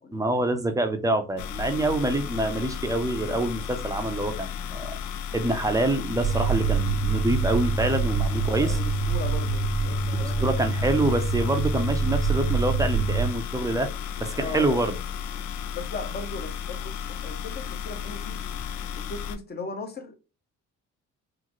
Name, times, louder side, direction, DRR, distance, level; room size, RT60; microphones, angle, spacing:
voice 1, 0.1-5.0 5.3-8.8 10.1-13.9 14.2-15.0, right 2 dB, 10° right, 0.7 m, -26 dB
sound 1, 1.4-19.4, left 8 dB, 75° left, 0.5 m, -34 dB
sound 2, 6.2-13.3, right 4 dB, 55° right, 0.6 m, -25 dB
voice 2, 8.3-10.5 14.3-14.8 15.7-18.4 19.0-20.2, left 3 dB, 35° left, 0.9 m, -38 dB
3.8 x 2.1 x 3.0 m
cardioid pair, 90°, 30 cm